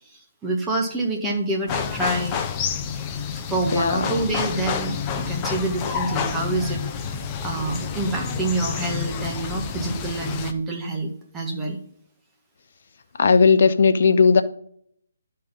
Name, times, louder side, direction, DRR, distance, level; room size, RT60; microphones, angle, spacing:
voice 1, 0.4-2.4 3.5-6.8 7.4-11.8, right 2 dB, 10° right, 1 dB, 1.7 m, -27 dB
sound 1, 1.7-10.5, left 6 dB, 20° left, 0.8 m, -29 dB
voice 2, 3.7-4.0 13.2-14.4, left 5 dB, 55° left, 10 dB, 0.9 m, -16 dB
11.0 x 4.5 x 5.4 m, 0.65 s
figure-of-eight pair, 150°, 0 cm